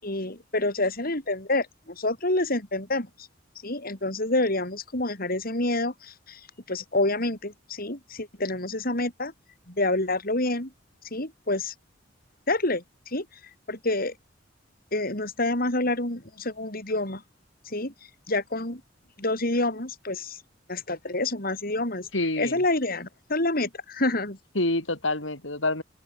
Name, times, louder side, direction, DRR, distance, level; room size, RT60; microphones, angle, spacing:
voice 1, 0.0-1.7 2.0-3.1 3.6-6.4 6.7-9.3 9.7-10.7 11.1-11.7 12.5-13.2 13.7-14.1 14.9-17.2 17.7-17.9 18.3-18.8 19.2-20.4 20.7-22.1 22.4-24.4, left 2 dB, 50° left, 7.6 m, -27 dB
voice 2, 22.1-22.6 24.5-25.8, left 2 dB, 85° left, 7.6 m, -27 dB
open air
head